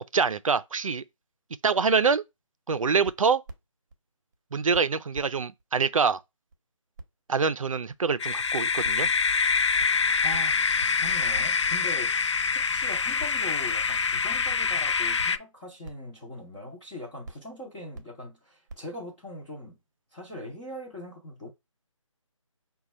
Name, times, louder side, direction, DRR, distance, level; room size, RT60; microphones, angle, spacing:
voice 1, 0.1-1.0 1.6-2.2 2.7-3.4 4.5-6.2 7.3-9.1, right 5 dB, 80° right, 0.5 m, -25 dB
sound 1, 3.0-3.9 4.3-4.4 4.7-4.8 5.1-5.3 5.6-5.7 6.1-6.2 6.5-6.6 7.0-7.1 7.4-7.5 7.9-8.0 8.4-8.5 8.8-9.0 9.3-9.4 9.8-10.0 10.3-10.5 10.8-10.9 11.3-11.5 11.9-12.0 12.5-12.6 13.2-13.5 13.8-13.9 14.5-14.6 15.2-15.3 15.8-16.0 16.6-16.7 17.2-17.4 17.9-18.1 18.7-18.8, right 2 dB, 35° right, 0.8 m, -42 dB
sound 2, 8.2-15.4, left 5 dB, 60° left, 0.4 m, -25 dB
voice 2, 10.2-10.6 11.0-12.4 12.6-19.8 20.1-21.5, left 1 dB, 10° left, 0.6 m, -41 dB
5.0 x 2.3 x 4.2 m
figure-of-eight pair, 160°, 17 cm